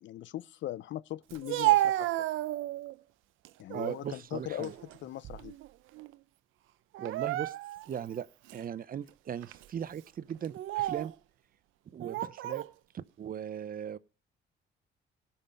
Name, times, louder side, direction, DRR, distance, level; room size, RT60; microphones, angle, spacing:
voice 1, 0.0-2.1 3.6-4.7 5.0-5.5, left 13 dB, 70° left, 0.5 m, -39 dB
Speech, 1.3-2.9 3.4-4.0 4.5-5.7 5.9-6.2 6.9-7.9 8.5-8.6 9.4-9.7 10.4-11.1 12.0-12.7, right 15 dB, 85° right, 0.5 m, -31 dB
voice 2, 3.7-4.7 7.0-7.5 7.9-11.1 11.9-12.6 12.9-14.0, right 8 dB, 45° right, 0.6 m, -38 dB
17.0 x 5.7 x 5.2 m
cardioid pair, 90°, 20 cm